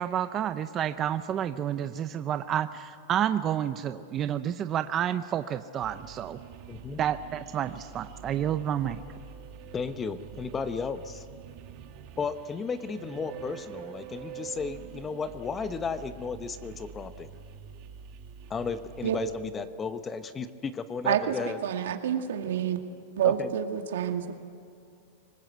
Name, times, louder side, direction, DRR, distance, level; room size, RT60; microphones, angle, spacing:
voice 1, 0.0-6.4 7.0-9.0, right 10 dB, 25° right, 10 dB, 0.6 m, -30 dB
sound 1, 5.8-19.3, right 8 dB, 40° right, 1.9 m, -46 dB
voice 2, 6.7-7.0 9.7-11.3 12.2-17.3 18.5-21.6 23.2-23.5, left 5 dB, 15° left, 11 dB, 0.9 m, -34 dB
voice 3, 21.6-22.8 23.2-24.3, right 10 dB, 85° right, 5 dB, 2.1 m, -27 dB
25.0 x 20.5 x 8.1 m, 2.4 s
supercardioid pair, 155°, 0 cm